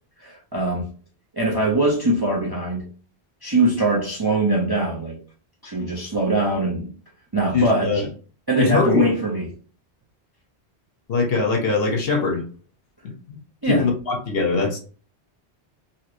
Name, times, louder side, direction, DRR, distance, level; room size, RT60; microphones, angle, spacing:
voice 1, 0.2-0.9 1.3-2.9 3.4-5.2 5.6-6.9 7.3-8.0 8.5-9.5 13.6-13.8, right 2 dB, 30° right, 0.5 m, -22 dB
voice 2, 7.5-8.0 8.6-9.0 11.1-12.4 13.0-13.4 13.7-14.8, left 4 dB, 60° left, 1.0 m, -21 dB
3.0 x 2.8 x 2.5 m
omnidirectional pair, 1.1 m